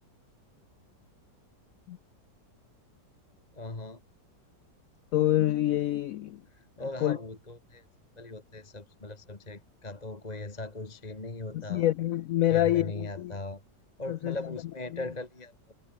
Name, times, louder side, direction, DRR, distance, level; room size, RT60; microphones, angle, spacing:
voice 1, 3.5-4.0 6.8-7.8 8.2-11.8 12.5-13.6 14.0-15.7, left 2 dB, 20° left, 2.1 m, -39 dB
voice 2, 5.1-6.4 7.0-7.2 11.5-13.4 14.1-14.4 14.9-15.0, left 13 dB, 90° left, 0.7 m, -26 dB
omnidirectional pair, 2.0 m